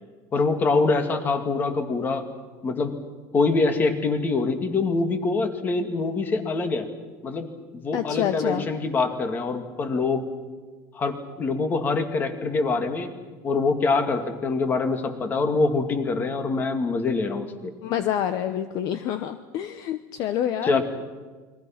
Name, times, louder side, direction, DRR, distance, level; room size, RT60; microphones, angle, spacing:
voice 1, 0.3-2.3 2.6-3.0 3.3-6.9 7.2-7.5 7.7-10.2 10.9-13.1 13.4-17.7 20.6-20.8, left 3 dB, 20° left, 7 dB, 2.2 m, -24 dB
voice 2, 7.9-8.7 17.8-20.8, left 10 dB, 45° left, 10 dB, 1.0 m, -27 dB
29.5 x 22.5 x 6.0 m, 1.4 s
cardioid pair, 165°, 9 cm